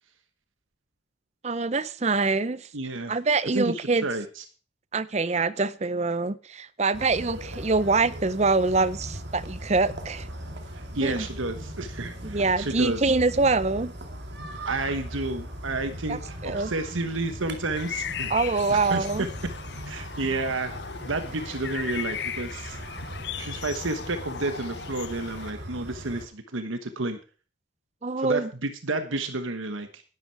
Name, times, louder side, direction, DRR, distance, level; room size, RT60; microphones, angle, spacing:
voice 1, 1.4-2.7 3.1-4.1 4.9-10.3 11.0-11.3 12.2-13.9 16.1-16.7 18.3-19.3 28.0-28.5, right 3 dB, 35° right, 0.6 m, -25 dB
voice 2, 2.7-3.2 3.5-3.7 4.0-4.4 10.9-13.0 14.6-18.3 18.7-19.3 19.9-20.7 21.0-22.8 23.4-27.2 28.2-30.0, right 2 dB, 80° right, 1.3 m, -31 dB
sound 1, 6.9-26.3, equal, 55° right, 2.4 m, -39 dB
sound 2, 17.7-25.5, left 8 dB, 55° left, 0.7 m, -37 dB
11.0 x 11.0 x 4.7 m
head